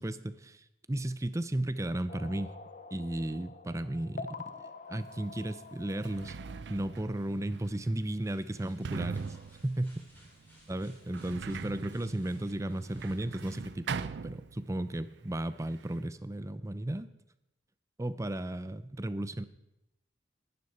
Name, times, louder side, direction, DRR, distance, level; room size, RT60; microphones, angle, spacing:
voice 1, 0.0-2.5 2.9-4.4 4.9-6.4 6.7-9.4 9.6-10.0 10.7-17.1 18.0-19.4, right 1 dB, 15° right, 14 dB, 0.5 m, -34 dB
sound 1, 2.1-7.4, left 4 dB, 45° left, 0.8 m, -47 dB
Sliding door, 5.1-5.2 5.8-15.0 15.2-16.1, right 5 dB, 65° right, 0.4 m, -42 dB
sound 2, 7.1-13.6, equal, 10° left, 5.5 m, -58 dB
19.5 x 11.0 x 4.2 m, 0.88 s
head